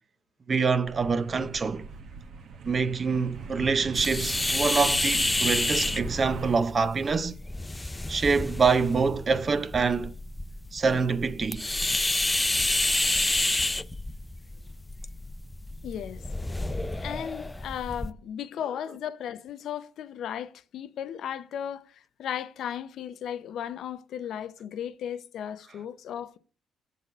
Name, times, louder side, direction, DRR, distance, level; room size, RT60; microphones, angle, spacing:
voice 1, 0.5-1.9 2.7-7.3 8.1-10.1 10.7-11.6, right 5 dB, 40° right, 0.6 m, -25 dB
sound 1, 0.8-6.6, right 5 dB, 70° right, 1.0 m, -39 dB
sound 2, 3.9-18.1, left 2 dB, 15° left, 0.4 m, -29 dB
voice 2, 15.8-16.2 17.0-26.4, left 9 dB, 75° left, 0.6 m, -36 dB
7.5 x 4.1 x 6.6 m
cardioid pair, 90°, 0 cm